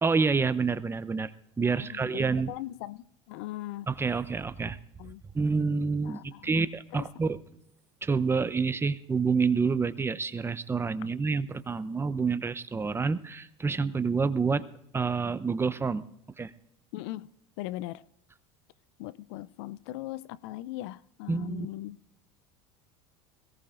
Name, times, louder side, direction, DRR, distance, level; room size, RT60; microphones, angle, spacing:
voice 1, 0.0-2.5 3.9-4.8 5.3-7.4 8.0-14.6 14.9-16.0 16.4-16.5 21.3-21.7, right 4 dB, 15° right, 0.7 m, -28 dB
voice 2, 1.7-3.9 5.0-5.2 6.0-6.6 6.9-7.1 16.9-17.3 17.6-18.0 19.0-22.0, left 16 dB, 70° left, 0.5 m, -39 dB
22.0 x 17.5 x 2.5 m
supercardioid pair, 100°, 14 cm